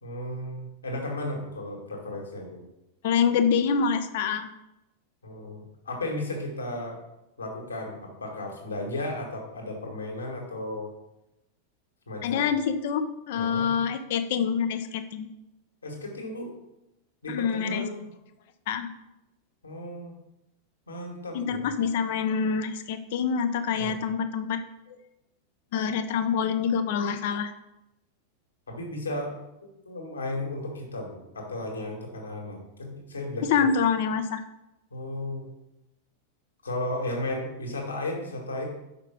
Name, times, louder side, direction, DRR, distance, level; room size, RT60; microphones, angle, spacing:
voice 1, 0.0-2.6 5.2-7.0 7.4-10.9 12.1-12.5 13.3-13.7 15.8-16.5 17.2-18.1 19.6-20.1 20.9-21.7 23.8-23.9 28.7-29.4 29.9-33.5 34.9-35.5 36.6-38.6, left 1 dB, 75° left, 1 dB, 1.8 m, -34 dB
voice 2, 3.0-4.5 12.2-15.3 17.3-17.8 18.7-18.9 21.3-24.6 24.9-25.0 25.7-27.5 33.4-34.4, left 6 dB, 50° left, 10 dB, 0.6 m, -26 dB
5.7 x 5.1 x 5.9 m, 0.92 s
figure-of-eight pair, 90°, 0 cm